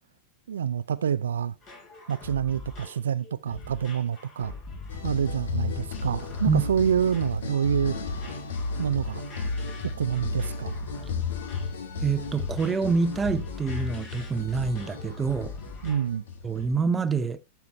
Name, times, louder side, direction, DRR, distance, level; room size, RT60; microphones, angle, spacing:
voice 1, 0.5-1.5 2.1-4.5 5.0-8.0 8.8-9.2 10.0-10.7 15.8-16.2, right 8 dB, 65° right, 0.5 m, -27 dB
sound 1, 1.6-16.2 16.5-16.7, left 3 dB, 35° left, 4.2 m, -43 dB
sound 2, 4.9-16.8, left 3 dB, 60° left, 1.6 m, -33 dB
voice 2, 12.0-15.6 16.4-17.4, right 5 dB, 15° right, 0.9 m, -26 dB
12.5 x 5.9 x 4.4 m
figure-of-eight pair, 90°, 0 cm